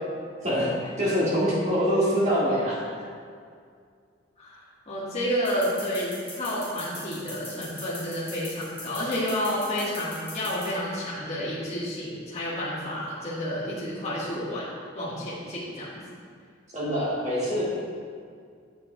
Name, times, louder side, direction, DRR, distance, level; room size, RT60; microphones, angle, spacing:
voice 1, 0.4-2.8 16.7-17.8, equal, 35° right, -7 dB, 1.7 m, -24 dB
voice 2, 4.4-16.0, equal, 35° left, -8 dB, 1.5 m, -30 dB
sound 1, 5.4-10.7, left 2 dB, 10° left, 1.7 m, -40 dB
8.2 x 6.9 x 2.2 m, 2.1 s
head